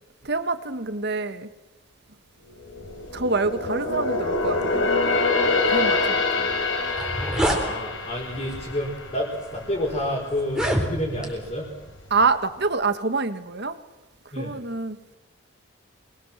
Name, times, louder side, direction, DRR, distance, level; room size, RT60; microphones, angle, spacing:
voice 1, 0.2-1.5 3.1-4.9 5.7-6.5 12.1-13.8 14.3-15.1, right 3 dB, 50° right, 10 dB, 1.7 m, -26 dB
sound 1, 2.5-10.0 10.4-10.6 11.2-11.9 12.2-12.3, left 3 dB, 65° left, 4.8 m, -26 dB
sound 2, 6.9-7.6 8.5-8.7 9.4-9.5 10.4-11.3, right 1 dB, 5° right, 3.7 m, -25 dB
voice 2, 7.4-11.7 14.3-14.5, left 1 dB, 30° left, -3 dB, 5.1 m, -29 dB
27.5 x 21.5 x 7.5 m, 1.0 s
head